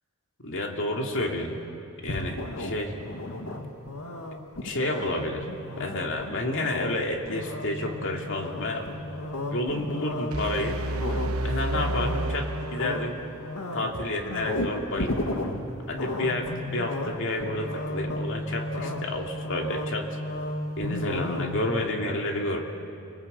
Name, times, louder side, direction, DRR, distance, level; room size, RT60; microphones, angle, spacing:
voice 1, 0.4-1.6 2.0-3.0 4.6-5.5 5.8-8.9 9.5-10.8 11.4-13.2 13.7-15.2 15.9-20.2 20.8-22.6, left 1 dB, 60° left, 2 dB, 2.5 m, -30 dB
sound 1, 2.1-21.9, left 1 dB, 85° left, 1.9 m, -34 dB
sound 2, 10.3-13.3, right 1 dB, 70° right, 0.9 m, -30 dB
27.5 x 19.5 x 8.1 m, 2.6 s
head